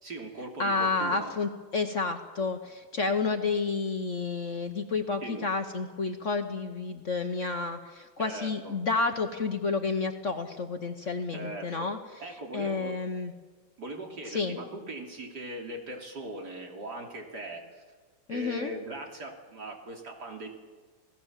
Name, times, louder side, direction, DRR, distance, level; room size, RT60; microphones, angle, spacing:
voice 1, 0.0-1.3 5.2-5.4 8.2-8.8 11.3-11.9 12.2-13.0 13.8-17.8 18.3-20.5, right 1 dB, 55° right, 2 dB, 3.5 m, -40 dB
voice 2, 0.6-12.0 12.5-13.3 14.3-14.6 18.3-18.7, left 4 dB, 45° left, 6 dB, 1.3 m, -30 dB
29.0 x 17.5 x 7.4 m, 1.4 s
omnidirectional pair, 2.1 m